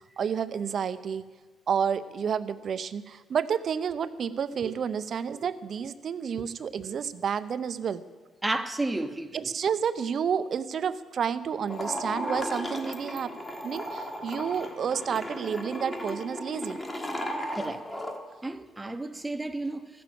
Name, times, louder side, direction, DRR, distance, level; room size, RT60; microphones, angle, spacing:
voice 1, 0.2-1.3 1.7-8.0 9.3-13.3 13.6-16.8, right 7 dB, 55° right, 0.5 m, -30 dB
voice 2, 8.4-9.5 17.5-17.8 18.4-19.9, right 2 dB, 10° right, 0.8 m, -32 dB
sound 1, 11.6-18.2, left 1 dB, 20° left, 1.5 m, -35 dB
14.5 x 6.9 x 7.6 m
cardioid pair, 90°, 0 cm